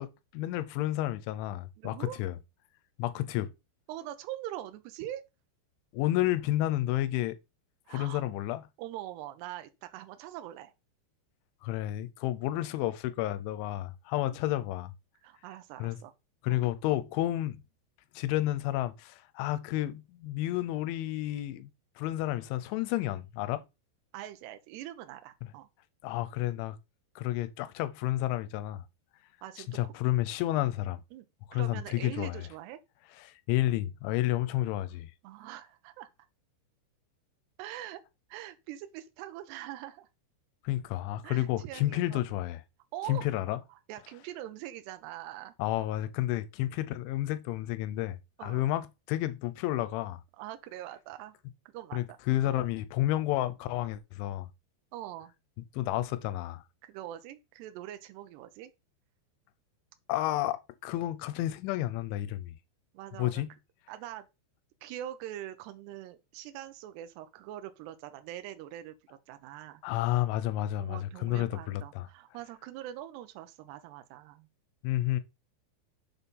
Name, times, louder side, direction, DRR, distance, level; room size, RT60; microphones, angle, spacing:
voice 1, 0.0-2.4 3.0-3.5 5.9-7.4 7.9-8.6 11.6-14.9 15.8-16.0 16.4-17.6 18.2-21.7 22.0-23.6 26.0-26.8 27.2-28.9 29.7-31.0 31.5-32.4 33.3-35.1 40.6-42.6 43.1-43.6 45.6-50.2 51.9-54.5 55.7-56.6 60.1-62.6 63.2-63.5 69.8-72.1 74.8-75.2, left 14 dB, 85° left, 3.0 m, -31 dB
voice 2, 1.8-2.2 3.9-5.2 7.9-8.2 8.8-10.7 14.2-14.5 15.2-16.1 16.5-16.6 24.1-25.7 29.4-29.9 31.1-31.3 31.5-32.8 35.2-36.1 37.6-38.0 38.3-40.1 41.2-42.2 42.9-43.2 43.9-45.5 48.4-48.7 50.4-51.4 51.7-52.2 52.5-52.6 54.9-55.3 56.8-58.7 62.9-63.4 63.9-64.3 64.8-69.8 70.8-74.5, right 13 dB, 80° right, 2.7 m, -43 dB
7.2 x 4.2 x 5.3 m
omnidirectional pair, 5.4 m